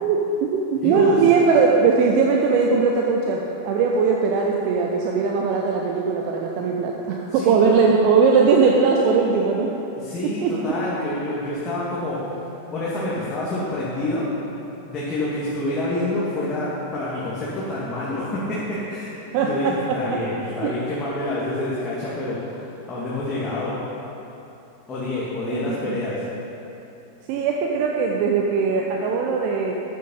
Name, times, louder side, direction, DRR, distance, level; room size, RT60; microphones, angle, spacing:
voice 1, 0.0-9.7 10.4-10.7 19.3-20.2 20.4-20.7 25.5-26.0 27.3-29.7, right 5 dB, 45° right, 0 dB, 1.0 m, -20 dB
voice 2, 0.8-1.2 7.3-7.6 10.0-12.3 12.7-14.3 14.9-19.1 19.5-24.1 24.9-26.2, left 1 dB, 25° left, -8 dB, 2.4 m, -27 dB
13.5 x 8.6 x 5.6 m, 2.9 s
figure-of-eight pair, 90°, 0 cm